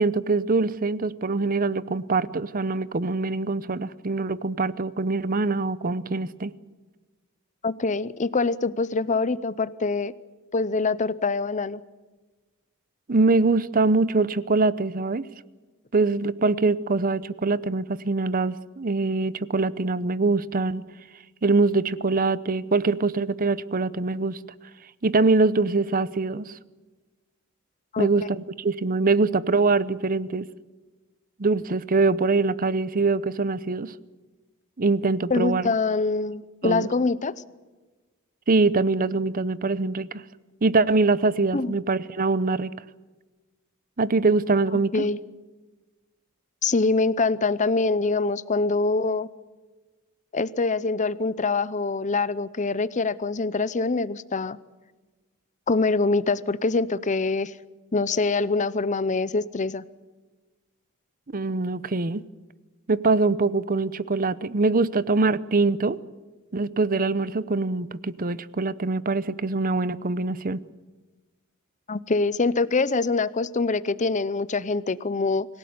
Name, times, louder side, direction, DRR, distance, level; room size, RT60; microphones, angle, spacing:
voice 1, 0.0-6.5 13.1-15.2 15.9-20.8 21.4-24.4 25.0-26.5 28.0-30.5 31.4-33.9 34.8-35.7 36.6-36.9 38.5-40.1 40.6-42.7 44.0-45.0 61.3-62.2 62.9-66.0 66.5-70.6, right 3 dB, 40° right, 17 dB, 0.7 m, -23 dB
voice 2, 7.6-10.1 10.5-11.8 27.9-28.1 35.3-37.4 41.5-41.8 44.9-45.2 46.6-49.3 50.3-54.6 55.7-57.5 57.9-59.8 71.9-75.5, left 3 dB, 35° left, 17 dB, 0.7 m, -24 dB
25.5 x 17.0 x 9.5 m, 1.2 s
head